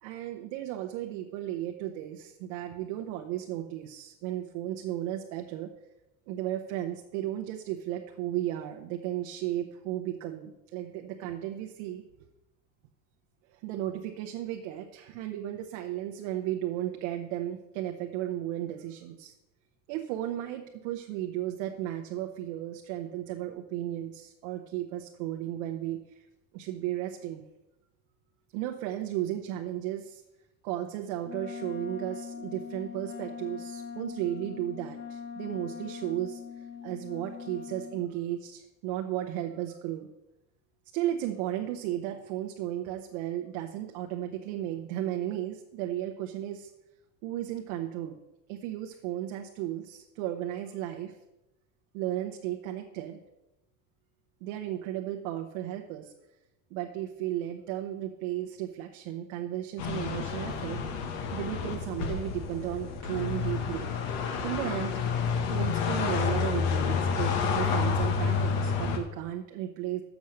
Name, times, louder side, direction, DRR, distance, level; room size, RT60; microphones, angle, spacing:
voice 1, 0.0-5.7 6.3-12.0 13.5-19.3 19.9-26.3 26.5-27.4 28.5-30.2 30.6-40.1 40.9-46.7 47.2-48.2 48.5-51.2 51.9-53.2 54.4-56.1 56.7-60.8 61.3-63.9 64.4-65.0 65.5-70.0, right 12 dB, 75° right, 4 dB, 0.9 m, -34 dB
Wind instrument woodwind instrument, 31.2-38.0, left 7 dB, 30° left, 0.6 m, -41 dB
sound 1, 59.8-69.0, left 5 dB, 70° left, 1.5 m, -29 dB
7.0 x 6.2 x 6.4 m, 0.94 s
cardioid pair, 140°, 39 cm